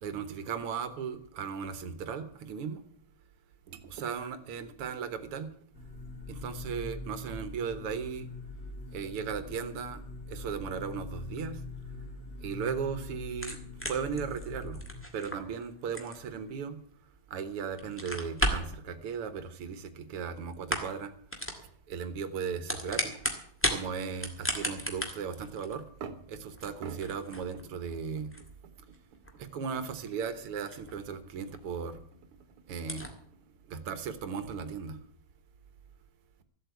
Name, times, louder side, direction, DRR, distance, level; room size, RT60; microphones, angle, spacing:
voice 1, 0.0-2.8 3.7-5.5 6.3-8.3 8.9-10.0 10.3-11.6 12.4-13.6 13.9-14.8 15.1-16.8 17.3-21.1 21.9-23.1 23.6-28.3 29.3-32.0 32.7-33.1 33.7-35.0, right 6 dB, 85° right, 11 dB, 2.1 m, -36 dB
sound 1, 5.7-15.0, left 2 dB, 30° left, 2.0 m, -43 dB
sound 2, 13.3-17.3 17.7-18.8 19.8-20.3 20.5-21.0 21.3-21.6 22.4-23.8 24.1-31.2 31.5-31.6 32.1-32.2 32.3-32.4 32.8-33.1, equal, 5° left, 1.7 m, -35 dB
14.0 x 8.1 x 8.3 m, 0.62 s
omnidirectional pair, 2.4 m